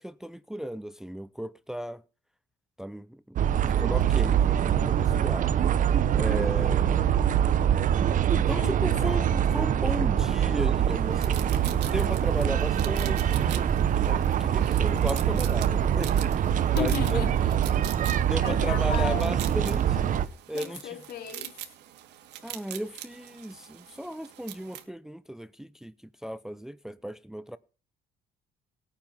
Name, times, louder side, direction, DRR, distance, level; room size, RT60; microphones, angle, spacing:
voice 1, 0.0-2.0 2.8-3.4 3.8-5.5 6.2-7.1 8.3-13.7 14.0-17.2 18.2-20.1 20.5-21.0 22.4-25.9 26.2-27.6, equal, 5° right, 0.6 m, -35 dB
sound 1, 3.4-20.3, right 9 dB, 50° right, 1.0 m, -24 dB
voice 2, 8.5-9.5 16.5-17.4 18.4-19.5 20.5-21.6, left 9 dB, 65° left, 3.2 m, -35 dB
sound 2, 10.7-24.8, right 13 dB, 85° right, 2.5 m, -44 dB
19.5 x 9.1 x 5.6 m
cardioid pair, 110°, 17 cm